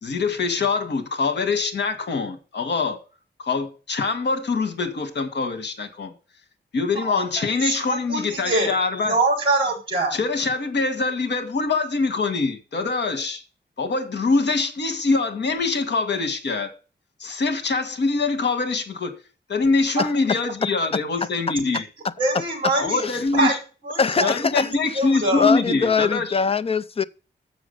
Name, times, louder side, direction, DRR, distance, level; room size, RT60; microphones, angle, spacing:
voice 1, 0.0-3.0 3.4-6.1 6.7-9.2 10.1-13.4 13.8-16.7 17.2-19.2 19.5-21.8 22.8-23.6 24.2-26.4, left 4 dB, 75° left, 1.6 m, -24 dB
voice 2, 7.0-8.7 9.0-10.2 22.2-23.0 23.3-23.5 23.8-24.3 24.6-25.6, right 2 dB, 30° right, 4.2 m, -24 dB
voice 3, 24.0-24.7 25.4-27.0, left 5 dB, 35° left, 0.5 m, -22 dB
7.2 x 6.0 x 6.7 m
wide cardioid pair, 145°, 18 cm